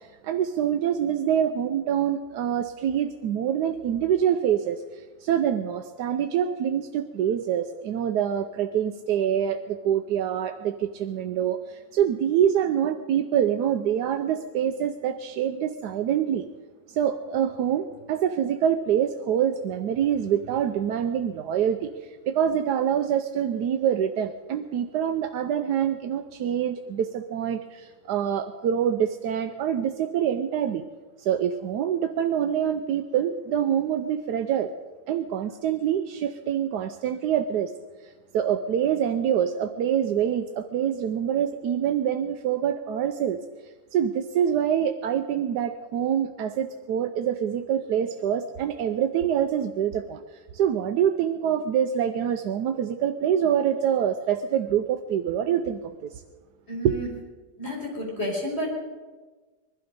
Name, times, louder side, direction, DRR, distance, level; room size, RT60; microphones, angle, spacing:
voice 1, 0.2-16.5 16.9-21.9 22.3-30.8 31.2-34.7 35.1-37.7 38.3-43.4 43.9-56.2 56.8-56.9, right 9 dB, 80° right, 7 dB, 1.2 m, -25 dB
voice 2, 56.7-57.1 57.6-58.7, equal, 40° left, -2 dB, 4.5 m, -30 dB
21.0 x 12.0 x 5.2 m, 1.3 s
omnidirectional pair, 1.7 m